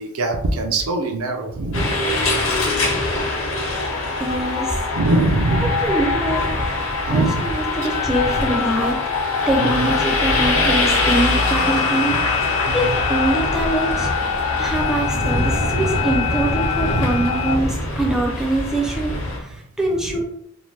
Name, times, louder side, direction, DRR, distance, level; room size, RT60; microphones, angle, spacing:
voice 1, 0.0-2.0 4.9-5.8 7.0-7.6 9.6-9.9 12.1-12.2 12.6-13.0 14.8-15.0 16.9-17.2 20.0-20.2, right 2 dB, 85° right, 4 dB, 0.5 m, -23 dB
sound 1, 1.7-19.4, left 2 dB, 70° left, 0.8 m, -24 dB
sound 2, 3.3-17.6, left 6 dB, 90° left, 0.3 m, -26 dB
voice 2, 4.2-4.8 5.6-6.5 7.1-9.0 9.5-12.2 12.7-14.1 14.6-20.2, right 1 dB, 5° right, -2 dB, 0.4 m, -23 dB
2.8 x 2.1 x 3.1 m, 0.72 s
head